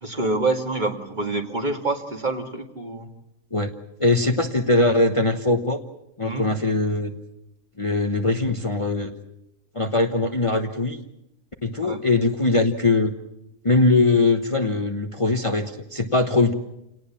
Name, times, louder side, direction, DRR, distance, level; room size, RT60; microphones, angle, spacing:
voice 1, 0.0-3.1 6.2-6.5 11.8-12.0, right 2 dB, 35° right, 4 dB, 2.2 m, -26 dB
voice 2, 4.0-5.8 6.2-7.1 7.8-9.1 9.7-11.0 11.6-13.1 13.6-16.5, left 2 dB, 25° left, 4 dB, 1.1 m, -21 dB
28.5 x 18.5 x 7.3 m, 0.86 s
omnidirectional pair, 1.4 m